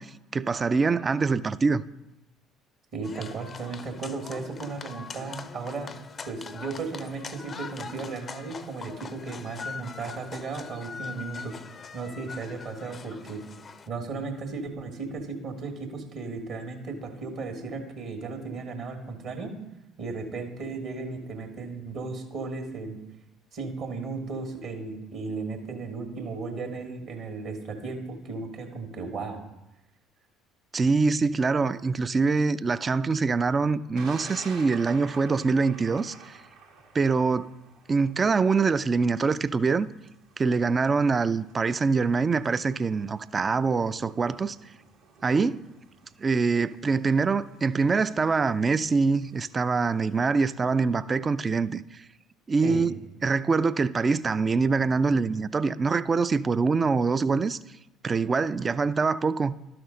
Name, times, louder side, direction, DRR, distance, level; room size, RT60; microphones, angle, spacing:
voice 1, 0.0-1.8 30.7-36.4 36.9-37.5 37.9-39.9 40.4-44.6 45.2-45.6 46.2-52.0 52.5-52.9 53.2-57.6 58.0-59.5, right 4 dB, 30° right, 0.3 m, -24 dB
voice 2, 2.9-5.9 6.3-11.5 11.9-13.4 13.9-19.6 20.0-23.0 23.5-29.4 52.6-52.9, right 4 dB, 55° right, 1.5 m, -35 dB
sound 1, 3.0-13.9, left 5 dB, 35° left, 0.5 m, -42 dB
Thunder, 34.0-50.2, right 4 dB, 70° right, 1.4 m, -51 dB
12.0 x 6.0 x 3.8 m
figure-of-eight pair, 55°, 0 cm